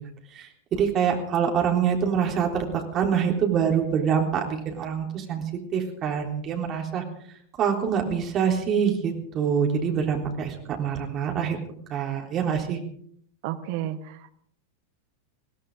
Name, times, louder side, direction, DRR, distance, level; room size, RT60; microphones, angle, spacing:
voice 1, 0.3-5.4 5.7-7.0 7.6-11.6 11.9-12.8, right 7 dB, 30° right, 1 dB, 3.6 m, -25 dB
voice 2, 13.4-14.3, right 11 dB, 50° right, 8 dB, 1.5 m, -32 dB
22.0 x 16.5 x 3.9 m, 0.64 s
figure-of-eight pair, 90°, 0 cm